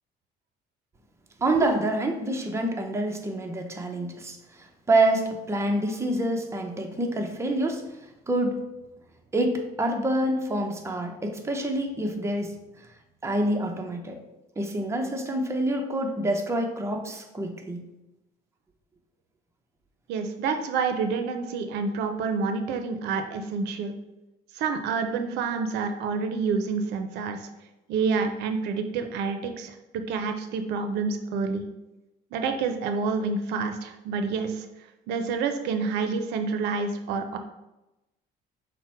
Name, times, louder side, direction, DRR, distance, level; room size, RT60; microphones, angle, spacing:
voice 1, 1.4-7.8 8.3-8.5 9.3-12.6 13.2-14.2 14.6-17.8, right 1 dB, 15° right, 3 dB, 0.6 m, -27 dB
voice 2, 20.1-23.9 24.5-27.5 27.9-31.6 32.3-34.7 35.1-37.4, right 5 dB, 85° right, 7 dB, 0.5 m, -28 dB
5.7 x 2.1 x 4.4 m, 0.97 s
cardioid pair, 110°, 17 cm